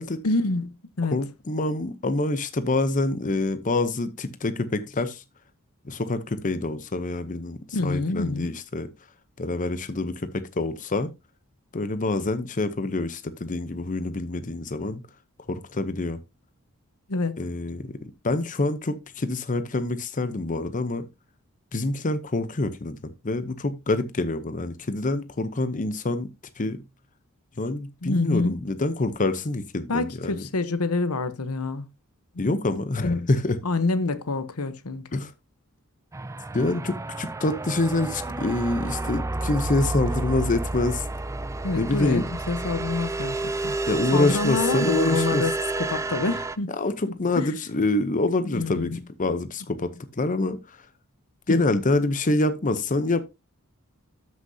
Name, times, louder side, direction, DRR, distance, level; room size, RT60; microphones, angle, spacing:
voice 1, 0.2-1.2 7.7-8.5 17.1-17.4 28.0-28.6 29.9-31.8 32.3-32.5 33.0-33.3 33.6-35.2 41.6-43.8 44.1-46.7 47.3-47.5 48.5-49.0 51.5-51.6, left 3 dB, 85° left, 1.0 m, -27 dB
voice 2, 1.1-5.2 5.9-8.9 9.4-11.1 11.7-15.0 15.5-16.2 17.4-18.0 18.2-21.1 21.7-26.3 26.6-26.8 27.6-30.4 32.4-33.6 35.1-35.3 36.5-41.0 41.8-42.3 43.9-45.4 46.8-49.9 50.2-50.6 51.5-53.2, left 2 dB, 35° left, 0.8 m, -26 dB
sound 1, 36.1-46.6, right 2 dB, 15° right, 0.4 m, -30 dB
13.0 x 6.3 x 2.8 m
head